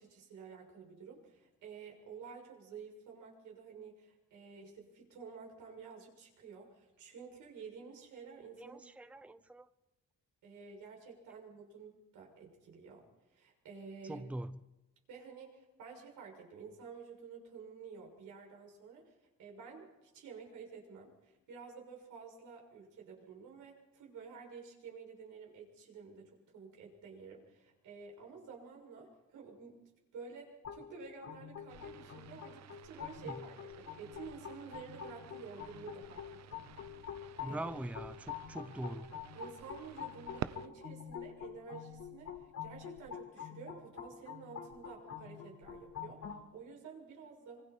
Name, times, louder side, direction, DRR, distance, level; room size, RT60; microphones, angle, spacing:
voice 1, 0.0-8.9 9.2-9.4 10.4-14.3 15.1-29.8 30.1-36.6 36.9-37.7 39.3-47.6, right 5 dB, 80° right, 6.8 m, -51 dB
voice 2, 8.6-9.7 14.0-14.6 33.2-33.3 37.4-39.1, right 1 dB, 5° right, 0.7 m, -43 dB
sound 1, 30.6-46.4, left 8 dB, 60° left, 3.8 m, -47 dB
sound 2, 31.7-40.7, right 10 dB, 60° right, 0.8 m, -50 dB
25.5 x 24.0 x 4.5 m
cardioid pair, 90°, 30 cm